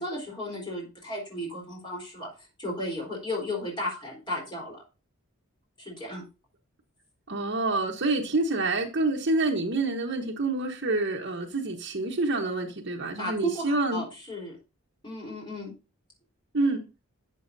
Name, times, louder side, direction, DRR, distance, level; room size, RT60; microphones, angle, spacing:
voice 1, 0.0-2.3 2.6-4.8 5.8-6.2 13.2-14.6 15.0-15.7, equal, 20° left, -1 dB, 3.8 m, -34 dB
voice 2, 7.3-14.0 16.5-16.8, right 2 dB, 55° right, 0 dB, 1.1 m, -27 dB
12.0 x 7.2 x 2.7 m, 0.29 s
head